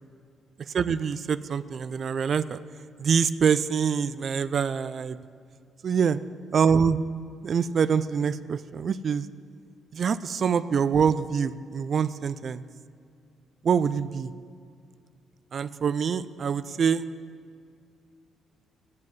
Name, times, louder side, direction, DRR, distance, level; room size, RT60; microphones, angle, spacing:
voice 1, 0.7-2.6 3.0-5.2 5.8-6.2 6.5-7.0 7.4-9.3 9.9-12.6 13.6-14.3 15.5-17.0, right 6 dB, 50° right, 15 dB, 0.3 m, -25 dB
7.9 x 7.6 x 7.4 m, 2.2 s
cardioid pair, 90°, 0 cm